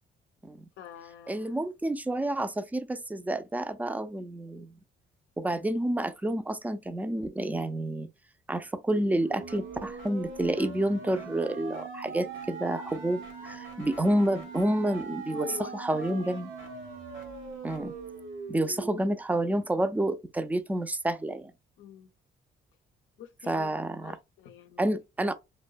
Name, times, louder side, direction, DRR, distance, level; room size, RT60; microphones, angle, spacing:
voice 1, 0.8-1.5 5.5-5.6 15.3-16.4 21.8-22.1 23.2-23.7 24.0-24.9, left 8 dB, 80° left, 0.5 m, -46 dB
voice 2, 1.3-4.7 5.4-8.1 8.5-16.5 17.6-17.9 18.5-21.5 23.5-24.2 24.8-25.3, right 1 dB, 10° right, 0.3 m, -29 dB
sound 1, 8.9-18.9, right 5 dB, 75° right, 0.9 m, -41 dB
2.6 x 2.1 x 2.2 m
cardioid pair, 90°, 20 cm